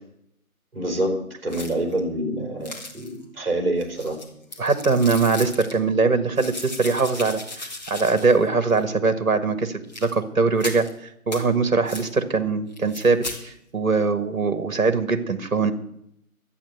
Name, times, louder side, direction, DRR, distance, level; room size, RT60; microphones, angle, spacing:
voice 1, 0.7-4.2, right 1 dB, 40° right, 3 dB, 3.5 m, -26 dB
sound 1, 1.5-2.0 2.6-3.2 3.8-5.8 6.4-8.5 8.7-8.8 9.8-10.1 10.6-10.9 11.3-11.4 11.9-12.1 12.7-13.4, left 2 dB, 30° left, 1.8 m, -36 dB
voice 2, 4.6-10.9 11.3-15.7, right 4 dB, 65° right, 10 dB, 1.6 m, -22 dB
12.0 x 8.9 x 7.8 m, 0.75 s
figure-of-eight pair, 165°, 44 cm